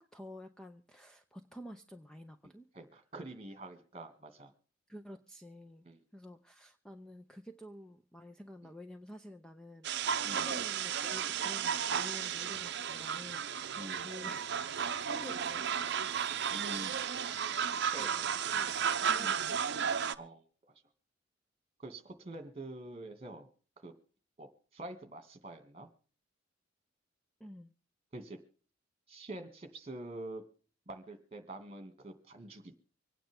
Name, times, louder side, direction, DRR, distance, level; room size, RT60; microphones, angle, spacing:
voice 1, 0.0-2.7 4.9-5.9 6.1-14.5 15.0-16.6 17.2-17.7 18.0-18.2 18.5-18.7 19.0-19.6 27.4-27.7, left 1 dB, 5° left, 0.7 m, -50 dB
voice 2, 2.4-4.5 5.8-6.0 8.6-8.7 10.2-10.5 13.8-14.1 16.5-16.9 17.9-18.1 19.1-19.4 20.2-20.4 21.8-23.5 23.8-23.9 24.4-25.9 28.1-28.4 29.1-30.4 30.9-32.8, right 2 dB, 30° right, 2.4 m, -46 dB
sound 1, 9.8-20.2, right 7 dB, 60° right, 0.7 m, -34 dB
25.0 x 9.3 x 3.7 m
head